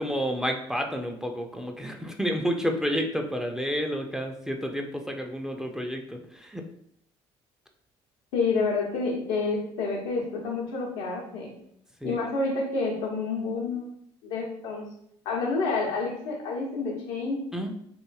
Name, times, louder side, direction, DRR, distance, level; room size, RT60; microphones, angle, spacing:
voice 1, 0.0-6.6 12.0-12.2 17.5-17.7, equal, 5° right, 3 dB, 0.4 m, -30 dB
voice 2, 8.3-11.5 12.0-13.9 14.2-14.9 15.2-17.4, left 4 dB, 80° left, -1 dB, 0.8 m, -29 dB
3.0 x 2.5 x 2.3 m, 0.70 s
hypercardioid pair, 65°, 14 cm